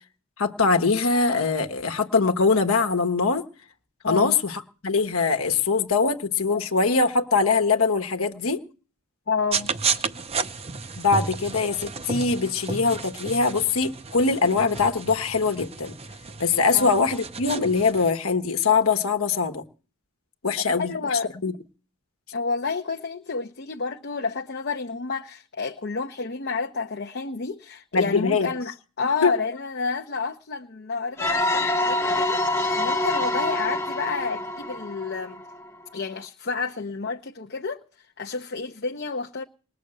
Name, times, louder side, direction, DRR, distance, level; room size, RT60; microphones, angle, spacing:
voice 1, 0.4-3.4 4.1-8.6 11.0-15.9 16.4-19.6 20.4-21.5 27.9-28.5 29.2-29.3, left 4 dB, 80° left, 1.3 m, -22 dB
voice 2, 4.0-4.3 9.3-9.7 16.7-16.9 20.8-21.3 22.3-35.4 35.9-39.4, left 4 dB, 50° left, 0.8 m, -30 dB
sound 1, 9.5-18.1, right 5 dB, 30° right, 0.7 m, -32 dB
sound 2, 31.2-35.8, left 1 dB, 15° left, 0.8 m, -26 dB
20.0 x 6.8 x 7.7 m
head